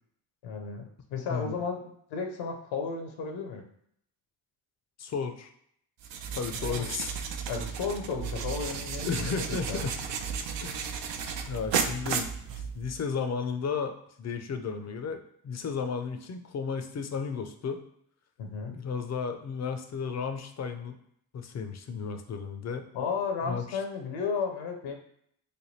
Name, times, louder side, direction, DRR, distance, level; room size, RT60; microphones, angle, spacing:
voice 1, 0.4-3.6 6.7-6.9 7.5-9.8 18.4-18.8 22.9-25.0, left 5 dB, 70° left, 4 dB, 0.8 m, -34 dB
voice 2, 5.0-5.5 6.4-7.1 9.0-9.9 10.6-10.9 11.5-17.8 18.8-21.0 21.3-22.9 23.4-23.8, left 5 dB, 35° left, 7 dB, 0.5 m, -34 dB
sound 1, 6.0-13.0, right 6 dB, 65° right, 0.6 m, -34 dB
3.4 x 2.2 x 4.1 m, 0.69 s
hypercardioid pair, 55°, 48 cm